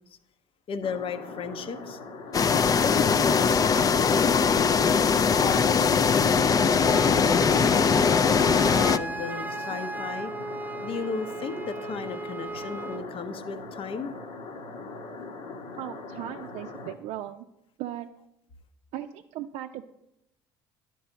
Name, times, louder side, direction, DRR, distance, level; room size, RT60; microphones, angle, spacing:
voice 1, 0.7-2.0 2.8-4.4 5.3-10.3 10.8-14.1, left 5 dB, 50° left, 10 dB, 0.8 m, -35 dB
sound 1, 0.8-16.9, left 3 dB, 70° left, 1.2 m, -41 dB
sound 2, 2.3-9.0, left 6 dB, 30° left, 0.4 m, -21 dB
Wind instrument woodwind instrument, 6.8-13.1, right 3 dB, 15° right, 0.7 m, -36 dB
voice 2, 15.8-17.5 17.8-18.1 18.9-19.8, right 12 dB, 65° right, 4 dB, 0.5 m, -37 dB
11.0 x 4.6 x 6.9 m, 0.83 s
hypercardioid pair, 60°, 12 cm